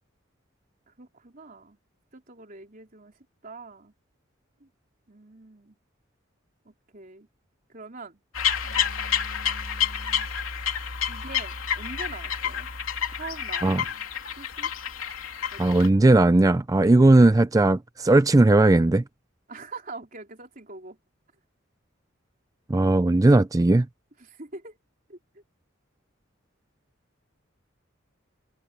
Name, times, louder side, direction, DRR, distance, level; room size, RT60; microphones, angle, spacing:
voice 1, 0.9-1.8 2.1-3.1 3.4-3.9 4.6-4.7 5.1-5.8 6.7-7.3 7.7-8.2 8.6-10.3 11.1-12.7 13.2-14.1 14.4-14.7 15.5-16.1 16.8-17.1 19.5-21.0 24.2-24.8 25.1-25.4, right 3 dB, 40° right, 3.8 m, -44 dB
sound 1, 8.3-15.9, left 8 dB, 80° left, 3.2 m, -29 dB
voice 2, 15.6-19.0 22.7-23.9, right 2 dB, 15° right, 0.4 m, -18 dB
head